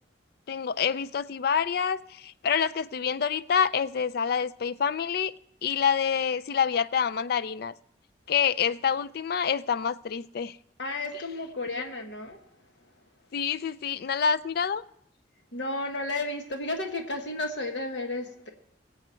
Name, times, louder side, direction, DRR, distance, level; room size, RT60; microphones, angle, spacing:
voice 1, 0.5-5.3 5.6-7.7 8.3-10.6 13.3-14.8, left 7 dB, 55° left, 0.4 m, -27 dB
voice 2, 10.8-12.4 15.5-18.5, left 2 dB, 70° left, 1.4 m, -32 dB
22.0 x 7.9 x 4.4 m
head